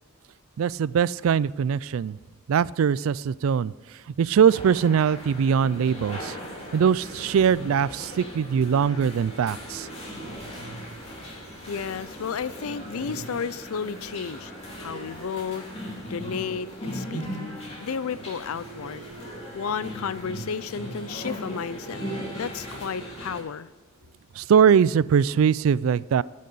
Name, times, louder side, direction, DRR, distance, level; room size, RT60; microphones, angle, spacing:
voice 1, 0.6-2.2 2.5-3.7 4.2-6.3 6.7-9.9 24.4-26.2, right 7 dB, 70° right, 21 dB, 0.3 m, -21 dB
sound 1, 4.4-23.4, equal, 30° left, 3.1 m, -38 dB
voice 2, 11.7-15.6 16.1-17.3 17.8-19.0 19.5-22.0 22.4-23.7, left 6 dB, 85° left, 17 dB, 0.5 m, -32 dB
15.0 x 6.5 x 5.4 m, 1.4 s
head